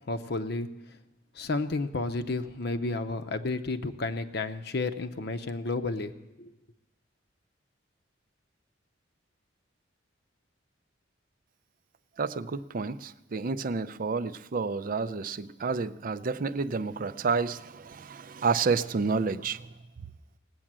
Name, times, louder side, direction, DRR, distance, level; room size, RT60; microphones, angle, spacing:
voice 1, 0.1-1.0 1.3-6.5, left 3 dB, 55° left, 0.7 m, -32 dB
voice 2, 12.2-19.7, right 4 dB, 45° right, 0.4 m, -30 dB
18.5 x 8.7 x 7.4 m
head